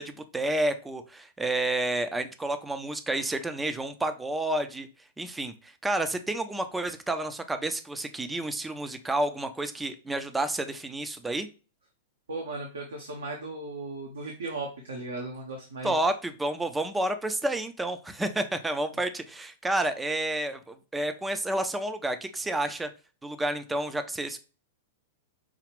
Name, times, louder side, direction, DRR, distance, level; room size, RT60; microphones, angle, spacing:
voice 1, 0.0-4.9 5.2-11.5 15.8-22.9 23.2-24.4, right 1 dB, 10° right, 8 dB, 0.4 m, -30 dB
voice 2, 12.3-16.0, right 2 dB, 65° right, 1 dB, 0.8 m, -36 dB
5.0 x 2.3 x 3.4 m, 0.34 s
figure-of-eight pair, 100°, 0 cm